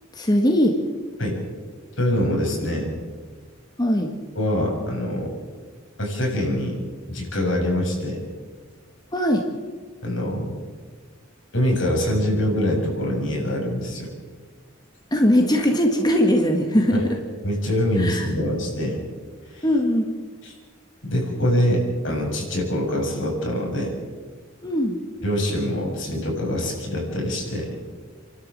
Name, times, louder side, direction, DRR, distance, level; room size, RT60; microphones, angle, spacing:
voice 1, 0.1-0.8 3.8-4.1 9.1-9.5 15.1-17.2 18.0-18.3 19.6-20.1 24.6-25.0, equal, 20° left, 2 dB, 1.8 m, -20 dB
voice 2, 2.0-2.9 4.4-5.4 6.0-6.8 7.1-8.2 10.0-10.6 11.5-14.1 16.9-17.1 17.4-19.0 19.5-19.7 20.4-20.5 21.1-23.9 25.2-27.7, equal, 70° left, -1 dB, 7.2 m, -24 dB
30.0 x 12.5 x 7.7 m, 1.5 s
head